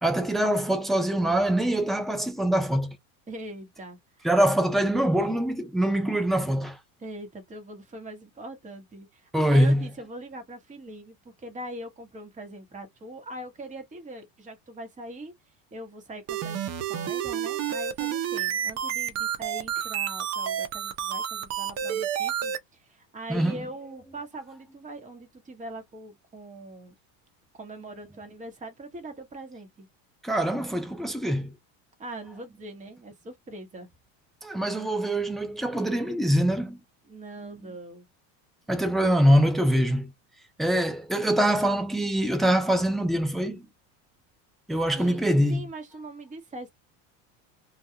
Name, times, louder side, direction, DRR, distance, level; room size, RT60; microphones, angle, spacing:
voice 1, 0.0-3.0 4.2-6.8 9.3-9.8 23.3-23.6 30.2-31.5 34.4-36.8 37.4-37.7 38.7-40.1 40.6-43.7 44.7-45.6, right 1 dB, ahead, 0.4 m, -24 dB
voice 2, 3.3-4.3 7.0-26.9 27.5-29.9 32.0-33.9 37.1-38.1 44.9-45.2 45.5-46.7, right 1 dB, 20° right, 1.0 m, -42 dB
sound 1, 16.3-22.6, right 9 dB, 40° right, 0.6 m, -30 dB
2.3 x 2.2 x 2.8 m
supercardioid pair, 115°, 41 cm